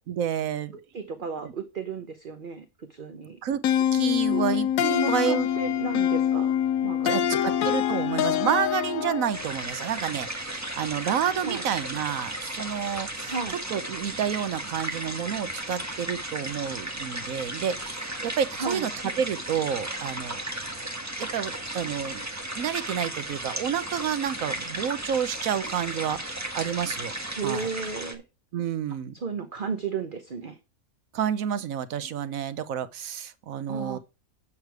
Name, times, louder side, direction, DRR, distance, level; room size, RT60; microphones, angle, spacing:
voice 1, 0.1-0.8 1.4-1.5 3.4-3.6 3.9-4.7 5.1-5.5 7.0-13.3 13.7-18.9 19.2-20.4 21.2-22.3 22.5-27.1 27.4-27.7 28.5-29.1 31.1-34.0, right 8 dB, 75° right, 1.2 m, -29 dB
voice 2, 0.9-3.4 4.3-4.4 4.8-6.5 6.8-7.3 11.4-11.7 13.2-13.6 18.6-18.9 27.3-28.2 29.1-30.6 33.7-34.0, right 5 dB, 40° right, 1.0 m, -33 dB
sound 1, 3.6-9.4, left 10 dB, 75° left, 1.1 m, -25 dB
sound 2, 9.3-28.1, right 1 dB, 10° right, 1.3 m, -35 dB
8.6 x 6.6 x 4.6 m
omnidirectional pair, 1.5 m